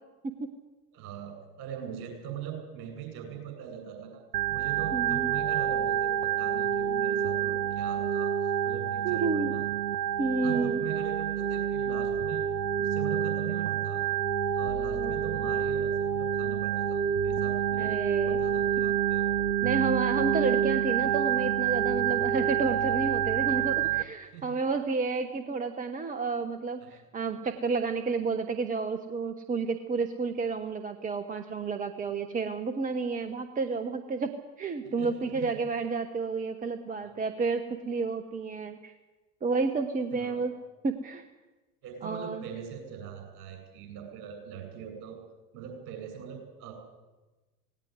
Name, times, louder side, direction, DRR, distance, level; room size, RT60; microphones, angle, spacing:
voice 1, 0.9-4.2 4.5-9.6 10.4-12.4 12.8-14.0 14.5-17.9 18.2-19.3 23.8-23.9 24.3-24.6 26.8-27.0 35.0-35.6 37.0-37.1 40.1-40.4 41.8-45.2 45.5-46.7, right 8 dB, 50° right, 4 dB, 7.7 m, -41 dB
Organ, 4.3-24.0, right 9 dB, 80° right, 0.8 m, -28 dB
voice 2, 4.9-5.3 9.0-9.5 10.2-10.8 15.0-15.3 17.8-18.4 19.6-38.9 39.4-40.5 40.8-41.3 42.0-42.4, right 4 dB, 15° right, 9 dB, 1.2 m, -31 dB
18.0 x 18.0 x 9.5 m, 1.2 s
figure-of-eight pair, 80°, 48 cm